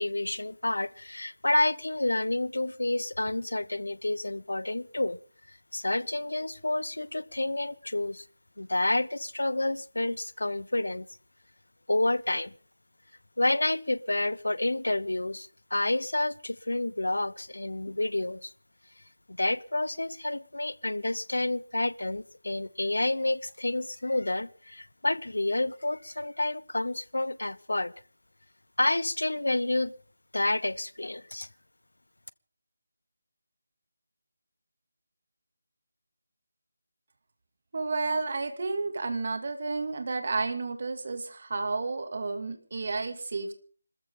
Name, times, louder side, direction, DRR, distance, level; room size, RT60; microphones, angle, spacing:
voice 1, 0.0-5.2 5.5-8.3 8.6-11.1 11.9-12.5 13.4-18.5 19.3-27.9 28.8-29.9 30.3-31.5, left 2 dB, 85° left, 0.9 m, -29 dB
voice 2, 37.7-43.5, right 3 dB, 50° right, 2.6 m, -31 dB
25.5 x 14.0 x 3.8 m
figure-of-eight pair, 165°, 0 cm